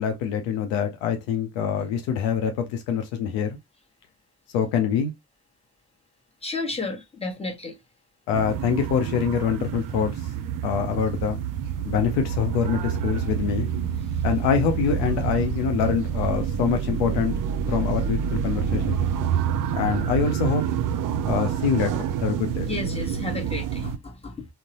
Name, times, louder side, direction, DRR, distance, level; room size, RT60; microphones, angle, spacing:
voice 1, 0.0-3.6 4.5-5.1 8.3-10.1 10.6-11.4 11.8-13.7 14.2-17.3 17.7-19.0 19.7-20.6 21.3-22.7, left 7 dB, 65° left, 0.6 m, -25 dB
voice 2, 6.4-7.8 22.6-24.5, left 3 dB, 15° left, 1.1 m, -32 dB
sound 1, 8.3-24.0, right 8 dB, 45° right, 0.5 m, -27 dB
3.7 x 2.1 x 2.9 m
figure-of-eight pair, 40°, 46 cm